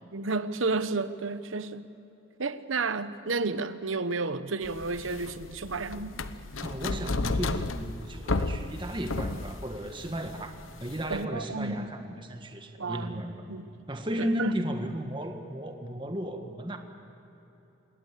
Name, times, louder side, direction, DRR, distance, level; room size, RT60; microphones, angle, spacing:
voice 1, 0.1-1.8 2.4-6.2 11.1-11.9 12.8-13.7 14.2-14.6, right 3 dB, 85° right, 1.0 m, -32 dB
sound 1, 4.6-11.2, left 3 dB, 85° left, 1.0 m, -33 dB
voice 2, 6.6-10.5 10.8-13.5 13.9-16.8, equal, 25° right, 1.7 m, -34 dB
27.0 x 20.5 x 8.3 m
head